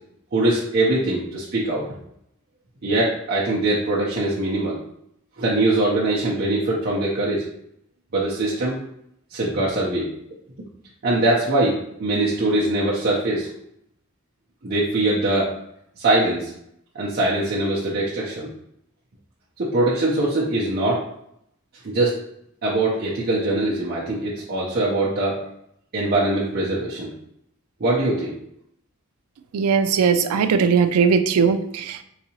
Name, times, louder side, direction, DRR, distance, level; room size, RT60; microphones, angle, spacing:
voice 1, 0.3-1.9 2.8-4.8 5.4-7.5 8.1-8.8 9.3-10.1 11.0-13.5 14.6-15.5 16.0-16.5 16.9-18.5 19.6-21.0 21.8-22.2 22.6-25.4 25.9-27.1 27.8-28.3, right 2 dB, 45° right, -6 dB, 0.6 m, -22 dB
voice 2, 29.5-32.0, right 6 dB, 85° right, 9 dB, 0.3 m, -19 dB
4.0 x 2.7 x 2.8 m, 0.74 s
head